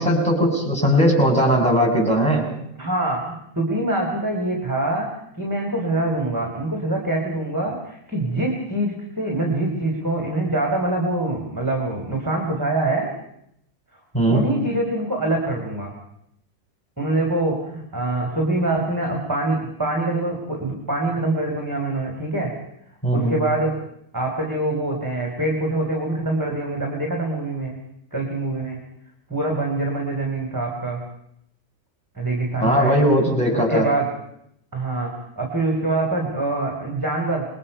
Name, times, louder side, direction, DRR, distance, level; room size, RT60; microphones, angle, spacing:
voice 1, 0.0-2.4 14.1-14.4 23.0-23.4 32.6-33.9, equal, 5° left, 1 dB, 6.9 m, -18 dB
voice 2, 2.8-5.1 5.4-13.1 14.3-15.9 17.0-22.5 23.1-23.8 24.1-27.8 28.1-28.8 29.3-31.0 32.1-32.9 33.5-34.1 34.7-37.5, right 2 dB, 15° right, 1 dB, 3.4 m, -24 dB
27.5 x 21.5 x 5.6 m, 0.76 s
omnidirectional pair, 1.5 m